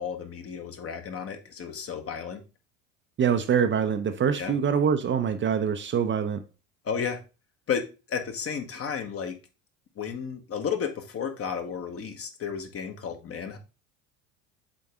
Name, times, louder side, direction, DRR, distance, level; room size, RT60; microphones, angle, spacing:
voice 1, 0.0-2.4 4.4-4.5 6.8-7.2 7.7-9.4 10.0-13.6, left 7 dB, 35° left, 1.3 m, -32 dB
voice 2, 3.2-6.4, right 7 dB, 30° right, 0.7 m, -24 dB
7.6 x 3.8 x 3.5 m
hypercardioid pair, 75°, 38 cm